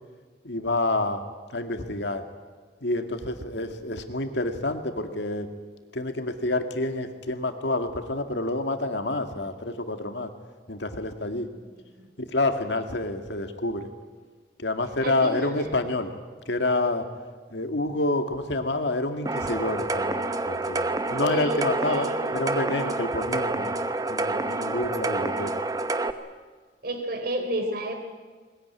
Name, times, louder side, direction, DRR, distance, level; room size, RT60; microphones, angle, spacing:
voice 1, 0.4-1.2 1.5-2.2 2.8-5.5 5.9-10.3 10.7-11.5 12.2-13.9 14.6-16.1 16.5-17.1 17.5-23.8 24.1-25.5, left 2 dB, 75° left, 6 dB, 2.1 m, -28 dB
voice 2, 15.0-15.7 21.2-22.4 26.8-28.0, right 1 dB, 55° right, 6 dB, 3.5 m, -31 dB
sound 1, 19.3-26.1, right 2 dB, 20° right, 0.9 m, -28 dB
21.0 x 20.5 x 9.7 m, 1.5 s
head